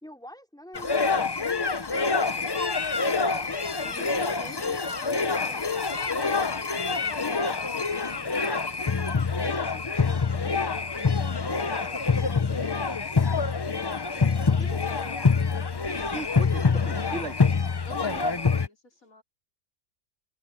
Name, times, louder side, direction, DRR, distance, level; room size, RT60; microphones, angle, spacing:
voice 1, 0.0-2.9 3.7-4.1 4.4-4.8 14.1-15.2 15.9-16.1, equal, 5° left, 3.9 m, -48 dB
sound 1, 0.7-18.7, left 4 dB, 30° left, 0.4 m, -26 dB
voice 2, 4.4-6.7 7.0-8.6 9.2-10.6 11.1-12.5 14.0-14.3 17.8-19.2, left 2 dB, 70° left, 4.7 m, -49 dB
voice 3, 16.0-17.3 18.0-18.2, right 2 dB, 50° right, 2.6 m, -37 dB
omnidirectional pair, 1.5 m